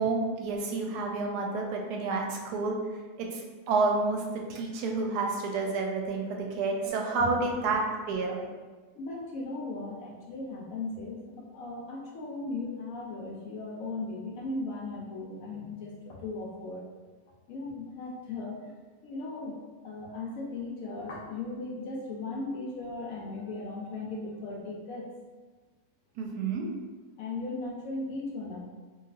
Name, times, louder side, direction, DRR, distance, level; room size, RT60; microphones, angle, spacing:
voice 1, 0.0-2.8 3.2-8.4 26.2-26.7, right 3 dB, 85° right, 1 dB, 1.1 m, -29 dB
voice 2, 6.8-7.4 8.9-16.9 17.5-18.7 19.0-19.5 19.8-25.1 27.2-28.6, left 3 dB, 70° left, -2 dB, 0.9 m, -37 dB
3.1 x 2.6 x 2.4 m, 1.4 s
omnidirectional pair, 1.7 m